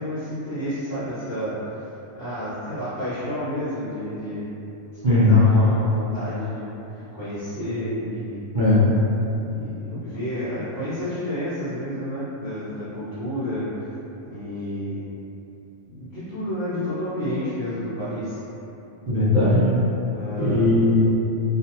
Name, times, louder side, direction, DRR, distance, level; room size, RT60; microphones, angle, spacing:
voice 1, 0.0-1.7 2.1-4.5 5.1-8.4 9.5-13.7 14.2-15.0 15.8-18.4 20.1-20.7, equal, 55° left, -14 dB, 0.9 m, -30 dB
voice 2, 5.0-5.5 8.5-9.0 19.1-19.7 20.4-21.1, left 2 dB, 50° right, -10 dB, 0.7 m, -18 dB
2.5 x 2.2 x 2.8 m, 2.9 s
omnidirectional pair, 1.3 m